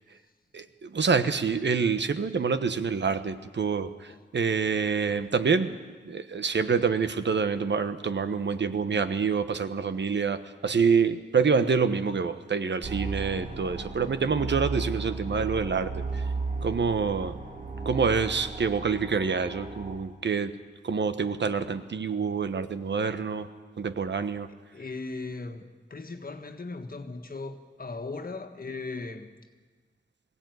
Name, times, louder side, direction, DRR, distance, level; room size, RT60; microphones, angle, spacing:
voice 1, 0.5-5.8 6.0-16.2 16.6-17.4 17.8-20.5 20.8-23.5 23.8-24.5, right 5 dB, 70° right, 1.2 m, -27 dB
sound 1, 12.8-20.0, right 3 dB, 45° right, 3.0 m, -35 dB
voice 2, 24.7-29.3, left 3 dB, 50° left, 1.7 m, -38 dB
21.5 x 16.5 x 9.5 m
wide cardioid pair, 95°, 19 cm